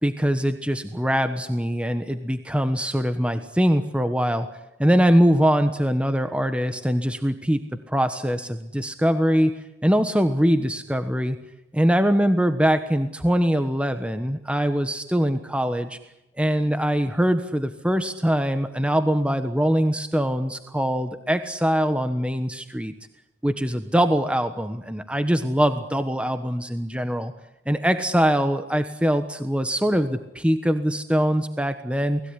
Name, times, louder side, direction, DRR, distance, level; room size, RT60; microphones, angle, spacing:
voice 1, 0.0-4.5 4.8-9.5 9.8-11.4 11.7-16.0 16.4-22.9 23.4-27.3 27.7-32.2, equal, 5° right, 9 dB, 1.3 m, -22 dB
30.0 x 20.5 x 9.8 m, 0.91 s
head